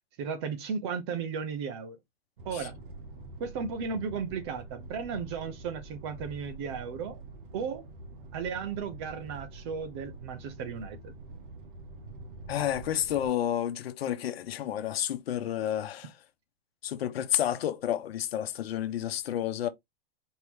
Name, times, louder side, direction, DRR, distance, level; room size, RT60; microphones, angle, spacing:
voice 1, 0.2-2.0 2.4-2.8 3.4-7.2 7.5-7.9 8.3-11.2, right 6 dB, 25° right, 0.6 m, -35 dB
sound 1, 2.4-13.3, right 2 dB, 55° right, 1.0 m, -46 dB
voice 2, 12.5-16.1 16.8-19.7, left 11 dB, 75° left, 0.9 m, -30 dB
4.4 x 3.0 x 3.4 m
supercardioid pair, 170°, 30 cm